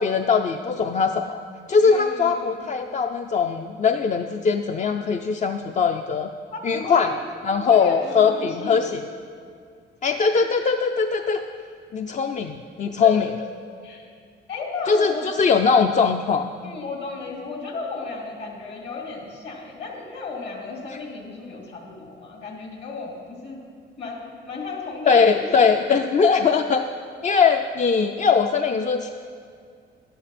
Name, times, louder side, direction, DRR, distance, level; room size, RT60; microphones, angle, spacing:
voice 1, 0.0-1.4 1.7-6.3 6.6-7.1 7.4-9.0 10.0-11.4 11.9-13.3 14.9-16.5 25.1-26.8 27.2-29.1, left 5 dB, 40° left, 6 dB, 0.5 m, -20 dB
voice 2, 1.8-2.7 6.5-7.2 7.6-8.9 13.0-13.5 13.8-14.1 14.5-15.3 16.6-23.6 24.0-26.0, left 3 dB, 60° left, 0 dB, 2.6 m, -34 dB
12.0 x 11.0 x 4.3 m, 2.3 s
cardioid pair, 90°, 20 cm